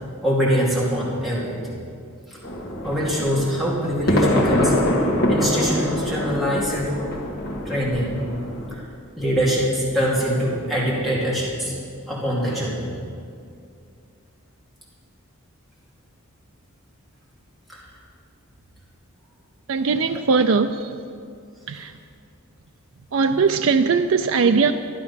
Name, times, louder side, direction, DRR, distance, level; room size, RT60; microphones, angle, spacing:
voice 1, 0.2-1.8 2.3-2.4 2.8-4.8 5.3-6.9 7.6-8.2 8.7-8.8 9.1-11.7 12.1-12.9 17.7-17.8 21.7-21.8, equal, ahead, -8 dB, 2.5 m, -23 dB
sound 1, 2.4-8.8, left 1 dB, 50° left, 1.7 m, -24 dB
voice 2, 19.7-21.0 21.7-21.9 23.1-24.7, right 5 dB, 65° right, 7 dB, 0.4 m, -20 dB
13.0 x 11.0 x 5.6 m, 2.4 s
head